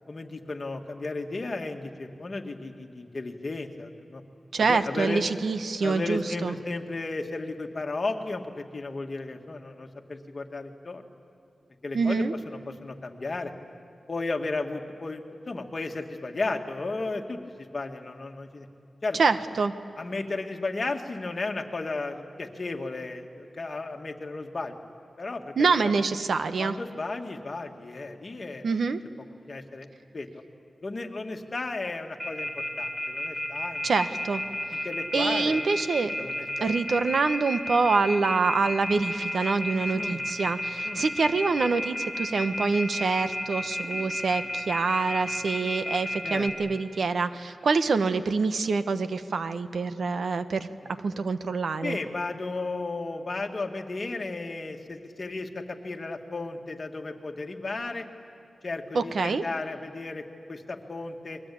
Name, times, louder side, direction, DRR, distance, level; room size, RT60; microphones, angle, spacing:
voice 1, 0.1-4.2 4.6-5.2 5.8-11.0 11.8-13.5 14.1-18.7 19.0-19.3 20.0-24.7 25.2-25.9 26.6-28.8 29.4-29.9 30.1-30.4 30.8-33.8 34.7-35.6 36.2-36.7 39.9-40.2 40.8-41.0 46.2-46.7 51.8-58.1 58.6-61.4, left 3 dB, 40° left, 3 dB, 2.1 m, -34 dB
voice 2, 4.5-6.5 11.9-12.3 19.2-19.7 25.6-26.8 28.6-29.0 33.8-34.4 35.1-36.1 36.6-50.7 51.0-52.0 58.9-59.4, right 4 dB, 75° right, 10 dB, 1.1 m, -26 dB
Telephone, 32.2-46.5, left 1 dB, 5° right, 4.4 m, -31 dB
30.0 x 22.5 x 8.6 m, 2.6 s
wide cardioid pair, 100°, 0 cm